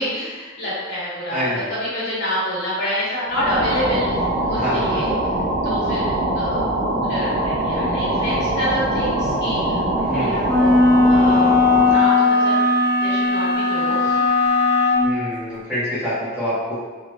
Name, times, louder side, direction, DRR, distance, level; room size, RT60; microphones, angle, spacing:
voice 1, 0.0-4.1 4.5-5.1 5.6-6.7 7.0-10.7 11.0-11.5 11.8-12.6 13.0-14.2, equal, 60° left, -9 dB, 1.2 m, -27 dB
voice 2, 1.3-1.7 4.5-5.0 10.0-10.6 15.0-16.8, equal, 5° right, -13 dB, 1.3 m, -26 dB
sound 1, 3.3-12.1, right 1 dB, 80° right, 0.6 m, -22 dB
sound 2, 10.5-15.1, left 3 dB, 15° left, 0.6 m, -17 dB
3.2 x 2.7 x 2.6 m, 1.4 s
head